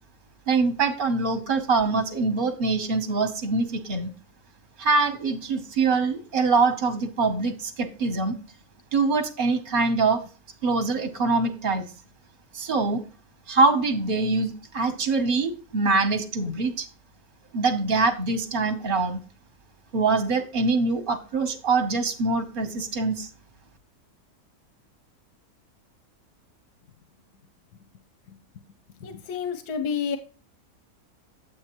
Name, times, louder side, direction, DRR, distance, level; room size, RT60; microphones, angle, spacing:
voice 1, 0.5-4.1 4.8-8.3 8.9-10.2 10.6-11.9 12.5-13.0 13.5-16.9 17.5-19.2 19.9-23.3, right 3 dB, 40° right, 1.1 m, -24 dB
voice 2, 29.0-30.2, left 6 dB, 90° left, 1.3 m, -29 dB
9.4 x 8.1 x 3.0 m
omnidirectional pair, 1.6 m